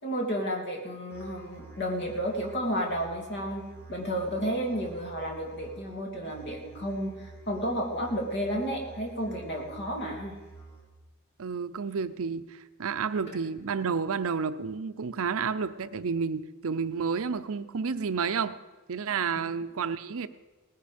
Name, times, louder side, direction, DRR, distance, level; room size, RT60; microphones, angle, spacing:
voice 1, 0.0-3.6 3.9-10.3 19.4-19.5, equal, 50° left, 1 dB, 2.8 m, -32 dB
Musical instrument, 1.1-11.1, right 4 dB, 10° left, 2.9 m, -49 dB
voice 2, 11.4-18.6 18.9-20.3, right 5 dB, 70° right, 13 dB, 0.6 m, -30 dB
18.5 x 10.0 x 5.2 m, 1.2 s
head